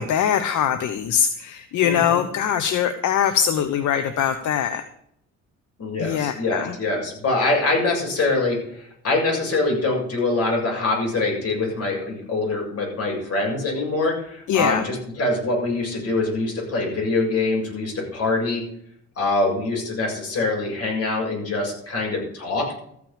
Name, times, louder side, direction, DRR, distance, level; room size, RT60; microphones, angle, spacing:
voice 1, 0.0-4.8 6.0-6.8 14.5-14.9, left 8 dB, 75° left, 10 dB, 1.0 m, -22 dB
voice 2, 1.8-2.2 5.8-18.6 19.2-22.7, left 2 dB, 55° left, -1 dB, 7.1 m, -24 dB
14.0 x 6.1 x 8.7 m, 0.70 s
cardioid pair, 90°, 30 cm